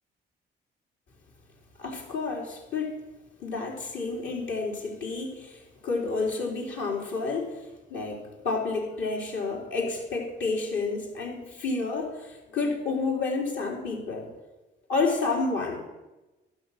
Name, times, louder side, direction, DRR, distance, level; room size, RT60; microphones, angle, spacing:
voice 1, 1.8-2.9 3.4-7.6 7.9-14.3 14.9-15.8, left 3 dB, 70° left, -1 dB, 3.7 m, -30 dB
12.0 x 5.7 x 9.1 m, 1.1 s
cardioid pair, 90°, 20 cm